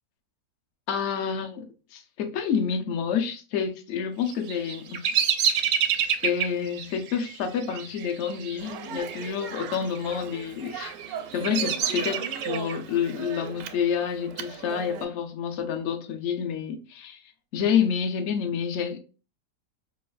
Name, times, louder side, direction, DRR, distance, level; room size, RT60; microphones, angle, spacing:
voice 1, 0.9-1.6 1.9-5.0 5.5-5.8 6.2-10.9 11.3-17.2 17.5-19.0, left 7 dB, 55° left, 0.8 m, -28 dB
Bird vocalization bird call bird song, 4.3-9.3 9.6-10.2 10.7-12.7, right 8 dB, 70° right, 0.7 m, -28 dB
Speech, 8.6-15.1, right 8 dB, 85° right, 1.2 m, -38 dB
5.3 x 2.5 x 2.3 m
omnidirectional pair, 1.9 m